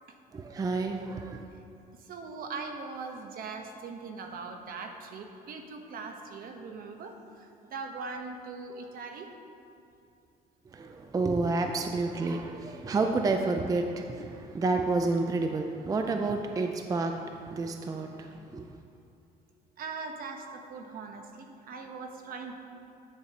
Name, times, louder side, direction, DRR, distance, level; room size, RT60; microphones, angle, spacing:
voice 1, 0.3-1.5 10.7-18.7, right 3 dB, 20° right, 4 dB, 0.4 m, -30 dB
voice 2, 2.0-9.3 19.8-22.6, right 4 dB, 60° right, 4 dB, 1.0 m, -40 dB
12.0 x 7.0 x 2.9 m, 2.6 s
cardioid pair, 110°, 17 cm